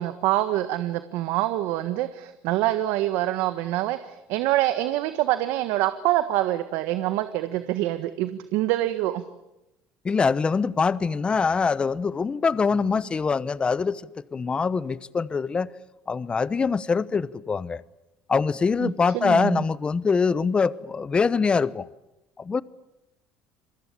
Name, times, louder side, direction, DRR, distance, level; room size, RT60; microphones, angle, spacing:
voice 1, 0.0-9.2 18.8-19.6, right 15 dB, 75° right, 1.5 m, -25 dB
voice 2, 10.0-14.0 14.3-15.7 16.1-17.8 18.3-21.9 22.4-22.6, left 5 dB, 25° left, 1.0 m, -24 dB
28.0 x 22.5 x 8.6 m
cardioid pair, 110°, 4 cm